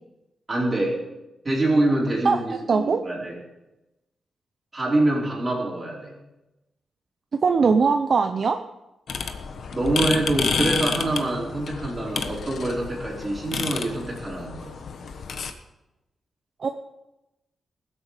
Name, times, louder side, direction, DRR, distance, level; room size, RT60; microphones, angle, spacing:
voice 1, 0.5-1.0 1.4-3.4 4.7-6.1 9.7-14.9, right 2 dB, 25° right, -4 dB, 4.9 m, -25 dB
voice 2, 2.2-3.0 7.4-8.6 13.6-13.7 16.6-16.7, right 5 dB, 50° right, 7 dB, 0.7 m, -21 dB
sound 1, 9.1-15.5, left 5 dB, 65° left, 1.1 m, -30 dB
20.0 x 8.4 x 5.0 m, 0.97 s
wide cardioid pair, 145°, 0 cm